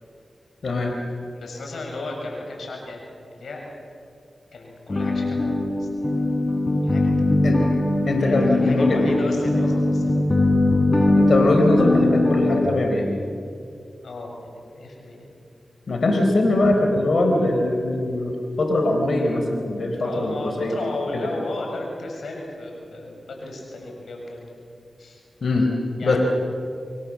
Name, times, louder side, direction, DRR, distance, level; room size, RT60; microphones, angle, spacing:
voice 1, 0.6-0.9 7.4-7.6 8.1-9.2 11.2-13.1 15.9-20.8 21.1-21.3 25.4-25.7 26.0-26.2, left 2 dB, 70° left, 2 dB, 4.0 m, -21 dB
voice 2, 1.3-3.0 3.3-3.7 4.5-6.5 6.8-7.4 8.2-10.3 14.0-15.3 20.0-24.5 25.0-25.2 26.0-26.2, left 2 dB, 85° left, 1 dB, 7.4 m, -35 dB
sound 1, 4.9-12.7, left 2 dB, 35° left, 4.1 m, -21 dB
29.5 x 23.5 x 7.6 m, 2.4 s
cardioid pair, 50°, 0 cm